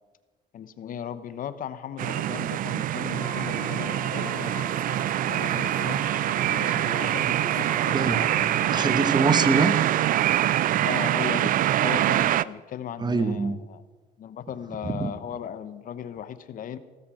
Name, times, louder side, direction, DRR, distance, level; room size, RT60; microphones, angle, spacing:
voice 1, 0.5-4.7 5.3-6.1 6.5-8.7 10.8-13.8 14.2-16.8, left 9 dB, 55° left, 13 dB, 0.9 m, -37 dB
Room tone medium sized apartment room with open window, 2.0-12.4, right 13 dB, 55° right, 0.4 m, -24 dB
sound 1, 3.1-8.9, left 5 dB, 30° left, 1.7 m, -41 dB
voice 2, 8.7-9.8 13.0-13.6 14.8-15.1, right 4 dB, 25° right, 11 dB, 1.1 m, -24 dB
17.0 x 14.5 x 4.9 m, 1.3 s
cardioid pair, 110°, 17 cm